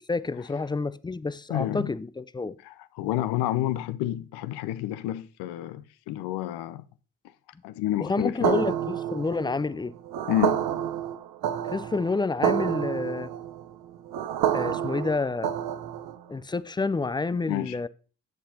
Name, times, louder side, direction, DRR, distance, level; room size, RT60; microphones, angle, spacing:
voice 1, 0.0-2.5 8.0-9.9 11.6-13.3 14.5-15.5 16.3-17.9, left 3 dB, 10° left, 0.3 m, -29 dB
voice 2, 1.5-1.9 2.6-6.8 7.6-8.7 10.3-10.6 17.5-17.8, left 13 dB, 70° left, 0.7 m, -29 dB
sound 1, 8.4-16.2, right 10 dB, 65° right, 0.9 m, -29 dB
11.0 x 7.5 x 2.7 m
hypercardioid pair, 45°, 41 cm